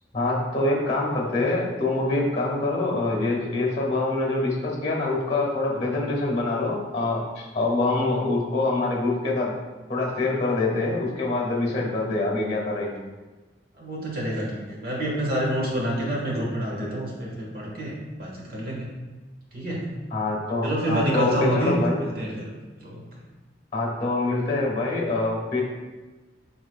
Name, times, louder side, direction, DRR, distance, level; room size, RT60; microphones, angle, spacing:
voice 1, 0.1-9.5 9.9-13.0 20.1-22.0 23.7-25.6, left 2 dB, 35° left, -2 dB, 1.3 m, -25 dB
voice 2, 13.8-18.9 19.5-19.9 20.6-22.5 22.8-23.0, right 1 dB, 55° right, -3 dB, 1.4 m, -27 dB
6.1 x 3.9 x 2.3 m, 1.2 s
head